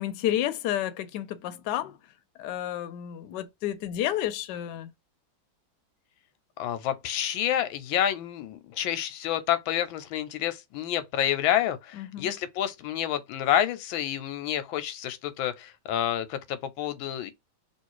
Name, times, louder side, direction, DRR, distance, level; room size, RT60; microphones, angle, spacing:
voice 1, 0.0-2.0 2.4-4.9 11.9-12.3, left 12 dB, 70° left, 1.1 m, -31 dB
voice 2, 6.6-17.3, left 11 dB, 90° left, 1.4 m, -28 dB
3.2 x 3.0 x 4.6 m
omnidirectional pair, 2.1 m